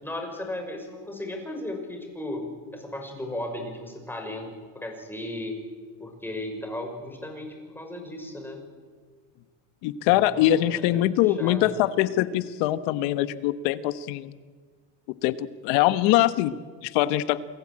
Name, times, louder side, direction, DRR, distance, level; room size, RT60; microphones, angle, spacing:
voice 1, 0.0-2.5 2.7-5.6 6.0-8.6 10.0-11.8, left 1 dB, 5° left, 3 dB, 6.2 m, -36 dB
voice 2, 9.8-14.3 15.2-17.4, left 14 dB, 80° left, 13 dB, 1.4 m, -23 dB
28.5 x 20.0 x 8.8 m, 1.5 s
cardioid pair, 125°, 43 cm